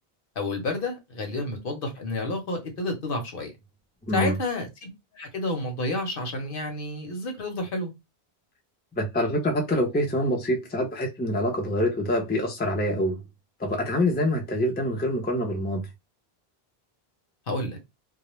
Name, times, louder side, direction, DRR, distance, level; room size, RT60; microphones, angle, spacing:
voice 1, 0.4-3.5 4.1-4.9 5.1-7.9 17.5-17.8, left 2 dB, 60° left, 0.9 m, -30 dB
voice 2, 4.0-4.3 9.0-13.2 13.6-15.9, left 1 dB, 15° left, 0.4 m, -25 dB
2.3 x 2.0 x 3.0 m
omnidirectional pair, 1.0 m